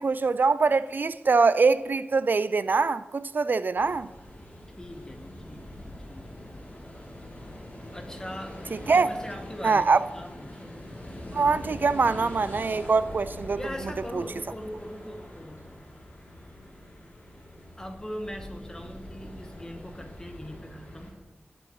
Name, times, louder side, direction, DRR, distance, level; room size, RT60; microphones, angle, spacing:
voice 1, 0.0-4.1 8.9-9.1 9.6-10.0 11.3-13.6 14.1-14.2, right 4 dB, 60° right, 0.3 m, -23 dB
sound 1, 3.8-21.1, left 1 dB, 45° left, 2.9 m, -43 dB
voice 2, 4.8-6.6 7.9-10.8 13.5-15.8 17.8-21.2, equal, 15° left, 1.2 m, -41 dB
18.0 x 8.5 x 3.1 m
wide cardioid pair, 95°, 4 cm